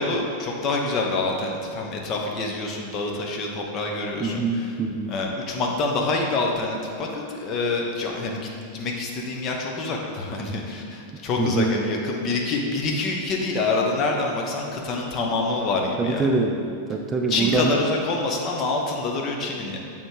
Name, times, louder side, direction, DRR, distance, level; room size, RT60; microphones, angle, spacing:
voice 1, 0.0-4.7 5.1-16.3 17.3-19.8, left 3 dB, 35° left, 0 dB, 0.9 m, -26 dB
voice 2, 4.2-5.1 11.4-11.7 16.0-16.6 16.9-17.8, right 3 dB, 20° right, 2 dB, 0.4 m, -23 dB
7.6 x 3.6 x 4.7 m, 2.4 s
figure-of-eight pair, 90°, 0 cm